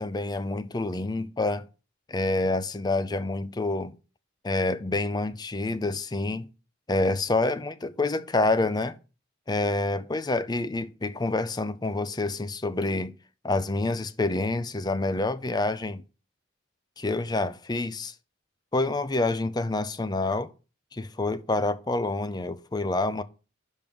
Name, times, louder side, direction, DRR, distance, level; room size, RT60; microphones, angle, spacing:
voice 1, 0.0-1.6 2.1-3.9 4.4-6.5 6.9-9.0 9.5-13.1 13.4-16.0 17.0-18.1 18.7-20.5 20.9-23.2, left 2 dB, 20° left, 0.5 m, -27 dB
6.1 x 5.4 x 6.9 m
head